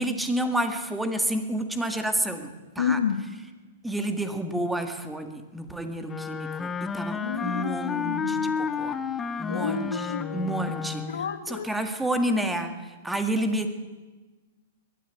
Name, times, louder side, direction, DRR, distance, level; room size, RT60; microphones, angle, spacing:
voice 1, 0.0-3.0 3.8-9.0 9.4-11.1 11.5-12.7 13.0-13.8, right 1 dB, 5° right, 1.9 m, -29 dB
voice 2, 2.8-3.2 7.2-8.5 9.5-10.5 11.1-11.7, left 7 dB, 85° left, 1.6 m, -30 dB
Wind instrument woodwind instrument, 6.1-11.4, left 6 dB, 15° left, 0.9 m, -31 dB
21.0 x 13.0 x 9.7 m
hypercardioid pair, 140°, 0 cm